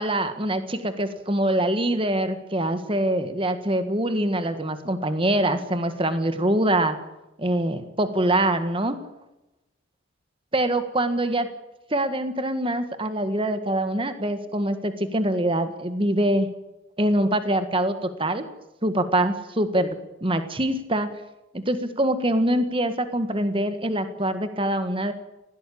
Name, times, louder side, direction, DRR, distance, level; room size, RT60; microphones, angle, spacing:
voice 1, 0.0-7.0 7.4-9.0 10.5-11.5 11.9-16.5 17.0-18.5 18.8-20.0 20.2-21.1 21.5-25.1, right 1 dB, 25° right, 9 dB, 1.7 m, -24 dB
20.0 x 17.0 x 8.7 m, 0.95 s
head